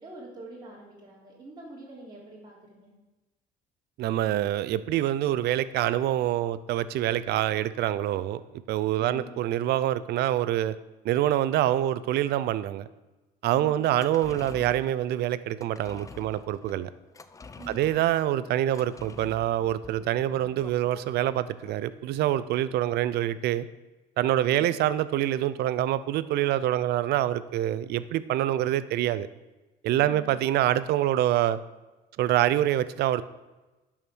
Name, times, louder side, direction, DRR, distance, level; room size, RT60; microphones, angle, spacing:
voice 1, 0.0-2.9 9.0-9.3 17.6-17.9, right 1 dB, 25° right, -6 dB, 3.5 m, -45 dB
voice 2, 4.0-10.8 11.0-12.9 13.4-16.9 17.7-23.7 24.2-29.3 29.8-31.6 32.2-33.2, right 13 dB, 75° right, 16 dB, 0.6 m, -26 dB
sound 1, 13.8-22.5 22.8-22.9, left 4 dB, 20° left, 0.6 m, -47 dB
11.5 x 5.7 x 6.3 m, 1.1 s
cardioid pair, 110°, 17 cm